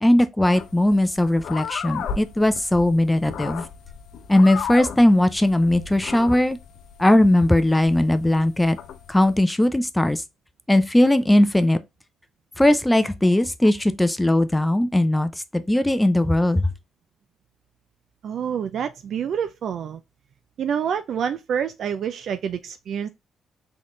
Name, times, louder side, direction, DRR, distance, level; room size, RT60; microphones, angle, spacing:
voice 1, 0.0-3.6 4.3-6.6 7.0-8.8 9.1-10.2 10.7-11.8 12.6-16.7, left 1 dB, 10° left, 0.5 m, -19 dB
sound 1, 0.5-9.4, left 7 dB, 75° left, 0.7 m, -36 dB
voice 2, 18.2-20.0 20.6-23.1, right 8 dB, 65° right, 0.4 m, -27 dB
4.1 x 3.8 x 3.1 m
cardioid pair, 90°, 0 cm